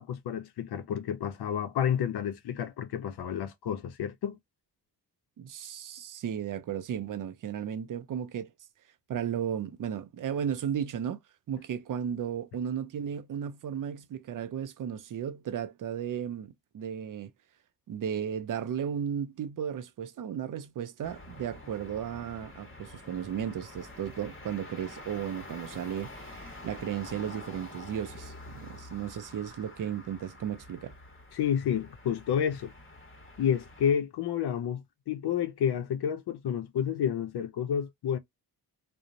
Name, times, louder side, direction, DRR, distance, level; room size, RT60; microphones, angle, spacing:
voice 1, 0.0-4.4 31.3-32.7 33.4-38.2, left 8 dB, 85° left, 0.5 m, -30 dB
voice 2, 5.4-8.5 9.1-11.2 11.5-17.3 17.9-30.9, right 8 dB, 55° right, 0.5 m, -35 dB
sound 1, 21.0-33.9, left 2 dB, 35° left, 1.2 m, -47 dB
2.5 x 2.0 x 2.8 m
wide cardioid pair, 95°, 38 cm